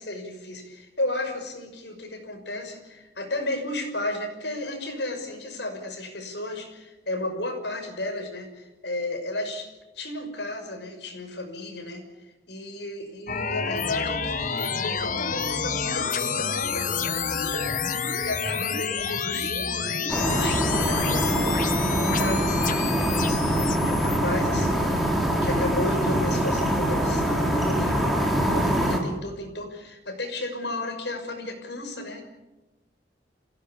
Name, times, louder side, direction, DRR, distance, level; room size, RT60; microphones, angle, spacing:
voice 1, 0.0-9.7 9.9-12.0 12.5-32.2, left 2 dB, 65° left, 5 dB, 6.1 m, -33 dB
sound 1, 13.3-24.2, left 6 dB, 45° left, 1.4 m, -29 dB
sound 2, 20.1-29.0, equal, ahead, 4.0 m, -24 dB
27.0 x 17.0 x 8.6 m, 1.0 s
head